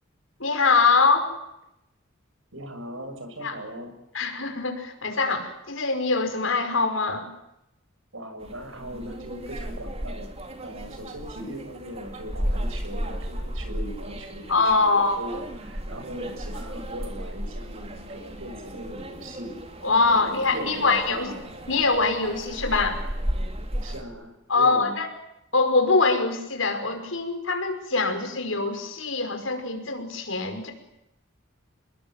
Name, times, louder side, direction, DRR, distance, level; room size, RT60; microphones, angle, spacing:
voice 1, 0.4-1.3 3.4-3.5 4.1-7.3 14.5-15.2 19.8-21.3 21.7-23.0 24.5-25.1 25.5-30.7, left 3 dB, 75° left, 6 dB, 5.5 m, -23 dB
voice 2, 2.5-3.9 8.1-10.3 10.6-19.5 20.0-21.4 23.8-25.0, equal, 80° right, 7 dB, 6.9 m, -39 dB
sound 1, 8.4-24.0, equal, 30° right, 3.1 m, -34 dB
27.0 x 21.0 x 9.3 m, 0.86 s
head